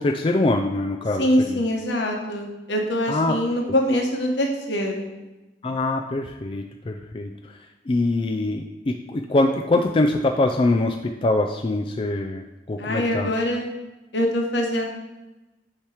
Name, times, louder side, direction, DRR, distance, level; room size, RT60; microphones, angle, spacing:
voice 1, 0.0-1.6 3.1-3.4 5.6-7.6 7.9-13.3, left 2 dB, 30° left, 3 dB, 0.3 m, -23 dB
voice 2, 1.2-5.1 12.8-13.7 14.1-14.8, left 1 dB, 75° left, 1 dB, 1.1 m, -24 dB
8.7 x 3.0 x 4.8 m, 1.1 s
head